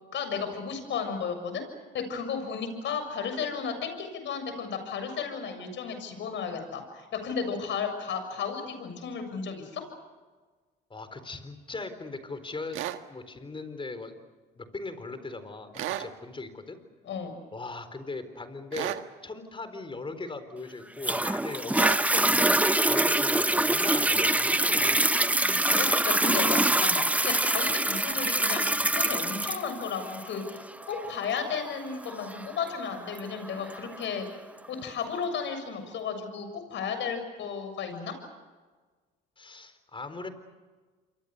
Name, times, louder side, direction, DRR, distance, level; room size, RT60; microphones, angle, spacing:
voice 1, 0.1-1.6 1.9-9.8 17.0-17.4 25.4-34.3 34.7-38.2, left 6 dB, 65° left, 8 dB, 7.1 m, -34 dB
voice 2, 10.9-12.8 13.1-14.1 14.6-16.8 17.5-18.9 19.2-25.1 39.4-40.3, left 3 dB, 25° left, 10 dB, 4.2 m, -39 dB
sound 1, 12.7-13.0 15.7-16.1 18.7-19.1 21.7-22.1, right 12 dB, 75° right, 1.6 m, -32 dB
Toilet flush, 21.0-34.0 34.6-34.7, right 1 dB, 5° right, 0.8 m, -25 dB
28.0 x 23.5 x 6.8 m, 1.4 s
supercardioid pair, 75°, 21 cm